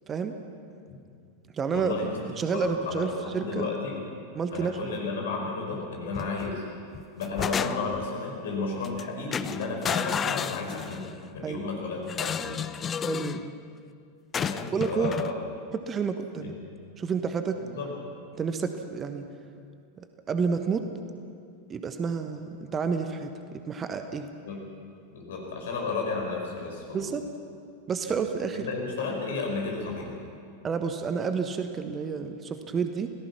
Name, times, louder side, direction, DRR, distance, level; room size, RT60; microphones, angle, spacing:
voice 1, 0.1-0.4 1.5-2.0 2.4-3.7 4.3-4.9 11.4-11.6 13.0-13.5 14.7-15.3 15.7-16.5 17.0-17.6 18.3-19.3 20.0-20.9 21.7-24.3 26.9-27.3 27.9-28.7 30.6-33.1, right 5 dB, 20° right, 8 dB, 1.3 m, -30 dB
voice 2, 1.7-2.2 2.5-4.0 4.5-6.6 7.1-12.6 14.4-15.3 16.4-16.6 17.6-17.9 24.5-24.6 25.1-27.1 28.1-28.2 28.5-30.1, left 4 dB, 60° left, 0 dB, 5.5 m, -33 dB
sound 1, 6.1-6.6 6.9-8.1 8.8-9.0 9.3-11.2 12.1-13.4 14.3-15.3, left 7 dB, 25° left, 0.6 m, -32 dB
27.0 x 18.5 x 6.0 m, 2.3 s
figure-of-eight pair, 90°, 0 cm